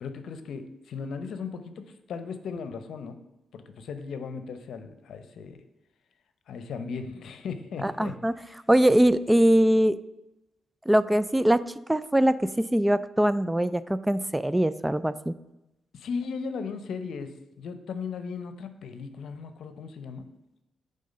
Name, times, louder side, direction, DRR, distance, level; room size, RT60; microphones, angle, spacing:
voice 1, 0.0-3.2 3.5-5.6 6.5-8.1 8.4-8.6 15.9-20.3, left 5 dB, 75° left, 9 dB, 0.7 m, -37 dB
voice 2, 7.8-8.3 8.7-10.0 10.9-11.6 11.9-15.3, right 1 dB, 10° right, 15 dB, 0.3 m, -22 dB
9.3 x 3.8 x 5.4 m, 0.93 s
supercardioid pair, 60°, 0 cm